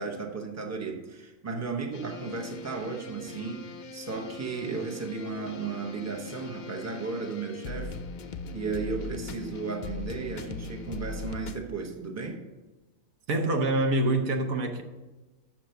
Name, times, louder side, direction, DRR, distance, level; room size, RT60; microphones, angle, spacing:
voice 1, 0.0-3.7 3.9-8.0 8.5-12.4, right 4 dB, 15° right, 2 dB, 0.9 m, -35 dB
sound 1, 1.9-11.7, left 3 dB, 65° left, 0.4 m, -40 dB
Organ, 1.9-7.9, right 4 dB, 40° right, 1.3 m, -49 dB
voice 2, 13.3-14.8, right 2 dB, 80° right, 5 dB, 1.4 m, -25 dB
7.4 x 5.9 x 6.6 m, 1.2 s
omnidirectional pair, 1.4 m